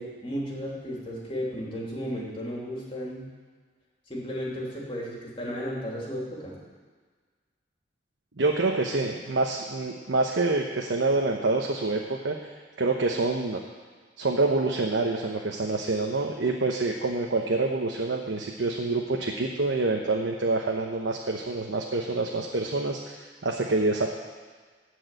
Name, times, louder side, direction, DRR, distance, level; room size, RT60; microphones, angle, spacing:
voice 1, 0.0-3.3 4.1-6.6, equal, 30° left, -4 dB, 2.9 m, -34 dB
voice 2, 8.4-12.3 12.8-13.6 14.2-24.1, right 3 dB, 85° right, 0 dB, 1.0 m, -27 dB
14.5 x 4.8 x 9.0 m, 1.5 s
head